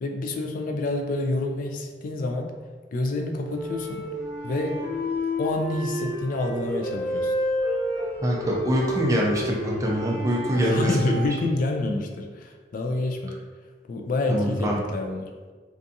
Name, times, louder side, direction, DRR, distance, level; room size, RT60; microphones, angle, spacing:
voice 1, 0.0-2.5 2.9-4.1 4.4-4.9 5.4-7.3 10.5-13.4 13.9-15.3, left 2 dB, 50° left, 3 dB, 0.3 m, -28 dB
sound 1, 3.4-11.3, left 1 dB, 20° left, 0.9 m, -30 dB
voice 2, 8.2-11.4 14.3-14.9, equal, 20° right, -3 dB, 0.4 m, -24 dB
2.5 x 2.3 x 2.6 m, 1.5 s
head